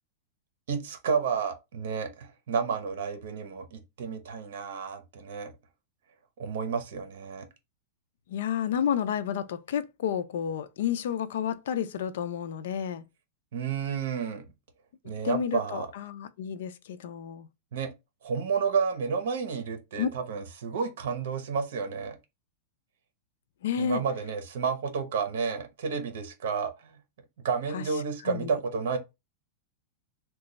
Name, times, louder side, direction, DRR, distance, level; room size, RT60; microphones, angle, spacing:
voice 1, 0.7-5.5 6.4-7.5 13.5-14.4 15.0-15.9 17.7-17.9 18.2-22.2 23.8-27.0 27.4-29.0, right 6 dB, 70° right, 0.8 m, -31 dB
voice 2, 8.3-13.0 15.2-17.5 20.0-20.1 23.6-24.0 27.7-27.8 28.3-28.5, left 8 dB, 70° left, 0.4 m, -30 dB
3.0 x 2.3 x 3.9 m
supercardioid pair, 165°, 0 cm